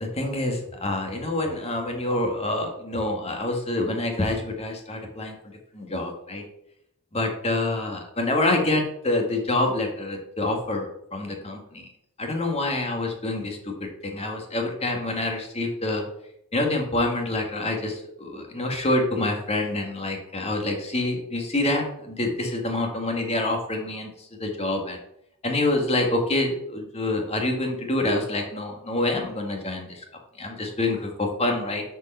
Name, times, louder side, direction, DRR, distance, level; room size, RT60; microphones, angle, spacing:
voice 1, 0.1-5.3 5.7-6.4 7.1-11.8 12.2-13.7 14.0-16.0 16.5-24.1 24.4-25.0 25.4-29.9 30.4-31.8, left 2 dB, 30° left, 2 dB, 1.9 m, -26 dB
8.6 x 5.3 x 6.7 m, 0.78 s
head